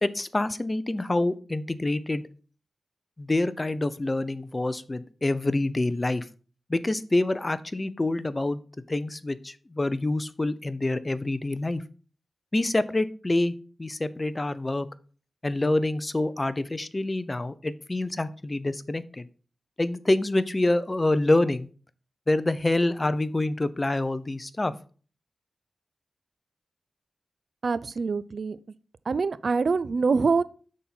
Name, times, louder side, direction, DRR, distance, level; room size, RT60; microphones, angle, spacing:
voice 1, 0.0-2.3 3.2-6.2 6.7-8.6 8.9-11.8 12.5-13.5 13.8-14.9 15.4-19.2 19.8-21.7 22.3-24.7, left 2 dB, 30° left, 0.6 m, -26 dB
voice 2, 27.6-28.6 29.1-30.4, right 4 dB, 70° right, 0.4 m, -25 dB
6.2 x 4.3 x 5.5 m
cardioid pair, 45°, 0 cm